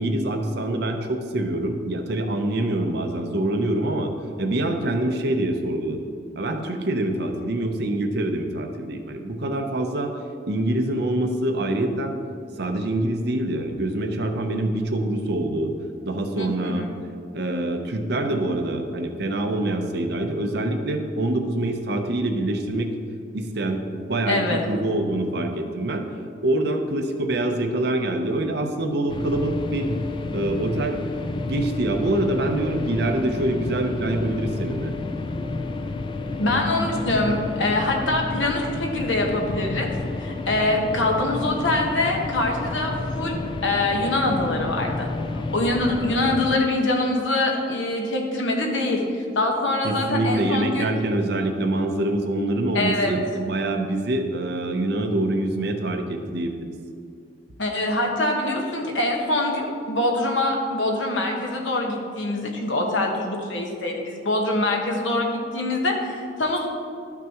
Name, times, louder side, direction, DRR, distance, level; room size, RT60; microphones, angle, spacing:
voice 1, 0.0-4.1 4.4-6.1 6.4-10.1 10.5-12.1 12.6-15.7 16.1-16.9 17.3-22.9 23.3-26.1 26.4-29.9 30.3-31.0 31.5-34.9 49.8-56.7, right 1 dB, 60° right, 5 dB, 0.7 m, -25 dB
voice 2, 16.4-16.9 24.3-24.6 36.4-39.9 40.2-45.1 45.5-50.9 52.7-53.1 57.6-66.7, left 2 dB, 85° left, 1 dB, 1.3 m, -24 dB
sound 1, 29.1-46.6, left 3 dB, 25° left, 0.3 m, -30 dB
12.5 x 6.0 x 3.0 m, 2.3 s
head